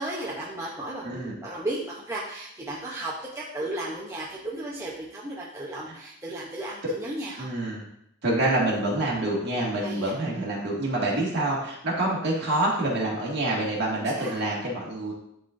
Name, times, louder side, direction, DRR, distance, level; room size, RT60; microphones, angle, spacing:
voice 1, 0.0-7.5 9.8-10.1 14.2-14.4, right 1 dB, 15° right, -5 dB, 0.7 m, -34 dB
voice 2, 1.0-1.4 5.9-6.0 7.4-7.8 8.2-15.1, right 1 dB, 50° right, -4 dB, 1.9 m, -27 dB
11.0 x 3.7 x 2.5 m, 0.75 s
head